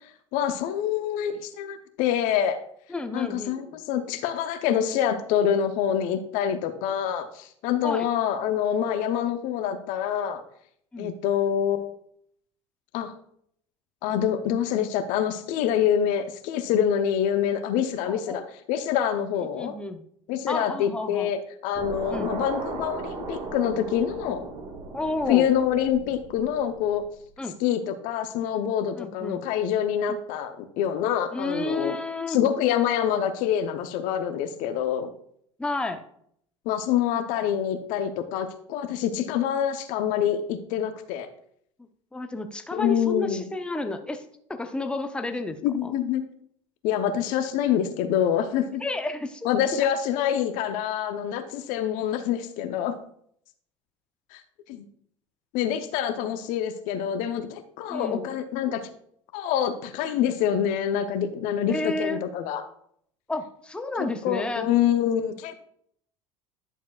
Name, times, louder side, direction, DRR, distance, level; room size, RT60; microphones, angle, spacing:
voice 1, 0.3-2.6 3.1-10.4 11.0-12.0 12.9-13.1 14.0-18.4 18.7-19.7 20.3-24.4 25.3-27.0 27.6-32.0 32.3-35.1 36.7-41.3 42.7-43.4 45.6-46.2 46.8-48.8 49.4-53.0 54.3-54.4 54.7-54.9 55.5-58.8 59.3-62.6 64.2-65.6, left 9 dB, 55° left, 9 dB, 0.8 m, -26 dB
voice 2, 2.9-3.5 7.8-8.1 10.9-11.1 18.1-18.5 19.5-20.0 20.5-21.3 22.1-22.3 24.9-25.5 27.4-27.6 29.0-29.4 30.1-30.2 31.3-32.4 35.6-36.0 42.1-44.2 44.5-45.9 48.8-49.9 57.9-58.3 61.7-62.2 63.3-64.7, left 2 dB, 5° left, 7 dB, 0.7 m, -31 dB
sound 1, 21.7-27.0, right 4 dB, 40° right, 1.6 m, -36 dB
10.5 x 7.1 x 2.3 m, 0.66 s
figure-of-eight pair, 65°, 16 cm